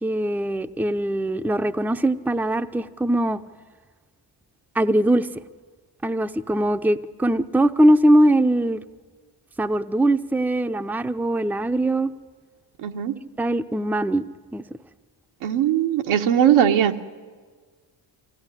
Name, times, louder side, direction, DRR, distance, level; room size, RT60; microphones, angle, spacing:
voice 1, 0.0-3.4 4.7-5.3 6.0-8.8 9.6-12.1 13.4-14.2 14.5-14.6, right 1 dB, 5° right, 8 dB, 0.6 m, -21 dB
voice 2, 12.8-13.1 15.4-16.9, right 10 dB, 80° right, 5 dB, 1.3 m, -19 dB
23.5 x 16.0 x 9.8 m, 1.5 s
cardioid pair, 75°, 48 cm